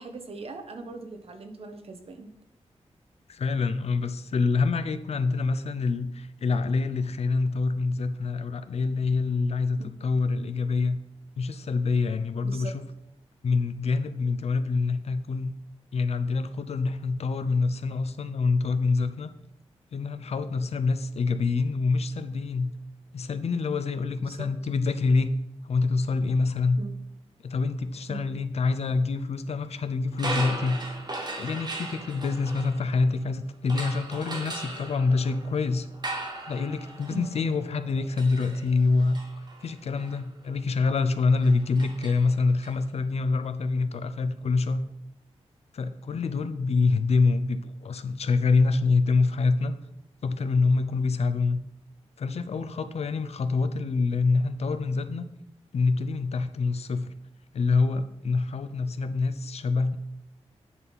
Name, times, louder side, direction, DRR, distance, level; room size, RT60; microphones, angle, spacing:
voice 1, 0.0-2.3 12.4-12.7 24.2-24.5 26.8-27.0 28.1-28.3 37.1-37.3, right 3 dB, 60° right, 6 dB, 1.1 m, -40 dB
voice 2, 3.3-11.0 11.4-12.8 13.4-15.5 15.9-19.3 19.9-22.7 23.1-25.3 25.6-26.8 27.4-31.0 31.3-35.9 36.5-39.2 39.6-44.8 45.7-49.7 50.2-51.6 52.2-55.2 55.7-57.1 57.5-60.0, left 4 dB, 65° left, 11 dB, 0.6 m, -26 dB
sound 1, 30.1-33.2 33.7-42.7, right 2 dB, 40° right, 1.4 m, -38 dB
9.5 x 5.5 x 4.1 m, 0.81 s
wide cardioid pair, 110°, 11 cm